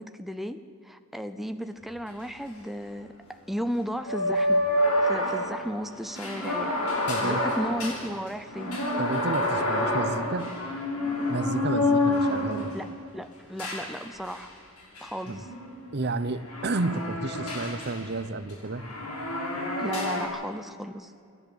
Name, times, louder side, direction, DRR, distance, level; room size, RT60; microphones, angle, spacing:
voice 1, 0.0-4.6 5.0-8.9 12.7-14.5 15.0-15.5 19.8-21.1, equal, ahead, 8 dB, 0.6 m, -35 dB
sound 1, 1.8-1.9 2.1-2.2 4.0-12.9 13.6-14.4 15.0-18.2 18.5-20.3, left 1 dB, 80° left, 7.0 m, -28 dB
voice 2, 7.1-7.4 9.0-10.5 11.3-12.7 15.3-15.4 15.9-18.8, right 3 dB, 50° right, 13 dB, 0.9 m, -31 dB
28.5 x 11.0 x 8.8 m, 2.3 s
head